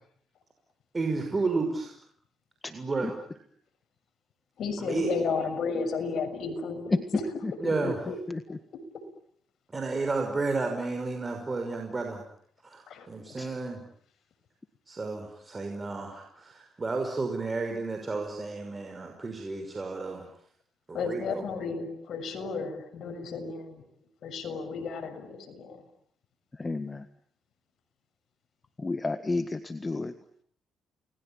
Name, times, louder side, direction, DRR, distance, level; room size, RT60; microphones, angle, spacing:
voice 1, 0.9-1.9 2.7-3.2 4.8-5.1 7.6-8.0 9.7-12.2 12.6-13.8 14.9-20.3 20.9-21.4, right 3 dB, 25° right, 4 dB, 5.8 m, -32 dB
voice 2, 4.6-7.2 8.1-8.2 12.9-13.1 20.9-23.8 24.2-25.8, left 4 dB, 65° left, 6 dB, 6.7 m, -33 dB
voice 3, 26.6-27.1 28.8-30.1, left 3 dB, 25° left, 9 dB, 1.7 m, -31 dB
29.5 x 21.5 x 9.0 m, 0.65 s
cardioid pair, 90°, 0 cm